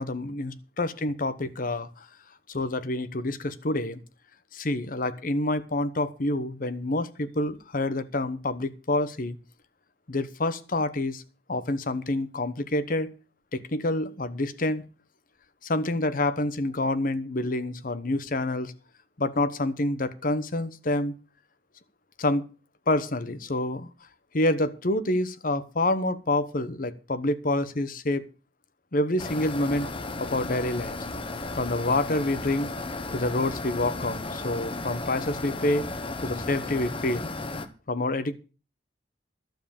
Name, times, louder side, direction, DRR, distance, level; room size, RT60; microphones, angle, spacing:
voice 1, 0.0-2.1 2.5-4.0 4.5-9.4 10.1-11.2 11.5-13.1 13.5-14.8 15.6-18.7 19.2-21.2 22.2-22.4 22.9-23.9 24.3-28.2 28.9-29.9 30.2-31.0 31.6-32.7 33.1-35.9 36.2-37.3 37.9-38.3, left 2 dB, 50° left, 12 dB, 1.0 m, -27 dB
sound 1, 29.2-37.7, left 2 dB, 30° left, 1.1 m, -34 dB
12.0 x 7.4 x 7.1 m, 0.35 s
head